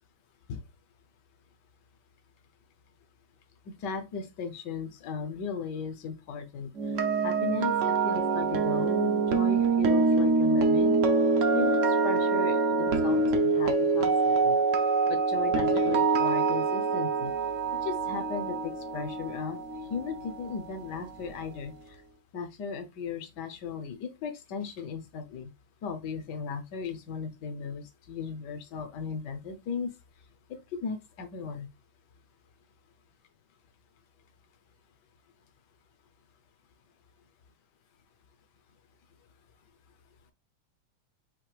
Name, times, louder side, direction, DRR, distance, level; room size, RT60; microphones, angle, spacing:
voice 1, 3.7-11.0 11.5-14.6 15.1-17.3 17.8-19.6 19.9-22.0 22.3-25.5 25.8-29.9 30.5-31.7, left 5 dB, 65° left, 1.3 m, -37 dB
sound 1, 6.8-20.8 21.1-21.4, right 4 dB, 60° right, 0.8 m, -25 dB
5.8 x 2.7 x 3.2 m
omnidirectional pair, 2.2 m